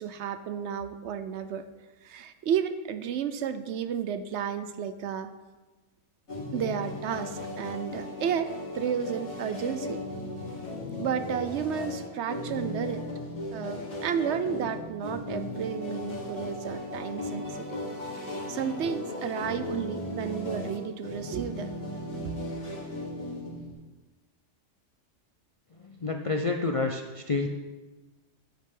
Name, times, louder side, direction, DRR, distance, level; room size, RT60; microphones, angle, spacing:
voice 1, 0.0-1.7 2.0-5.3 6.5-10.0 11.0-13.0 13.5-17.8 18.2-21.7 22.2-22.4, right 8 dB, 70° right, 11 dB, 0.9 m, -32 dB
sound 1, 6.3-23.7, left 1 dB, 85° left, 3.1 m, -36 dB
voice 2, 25.8-27.5, left 3 dB, 45° left, 3 dB, 0.4 m, -29 dB
10.0 x 8.2 x 3.8 m, 1.2 s
omnidirectional pair, 1.3 m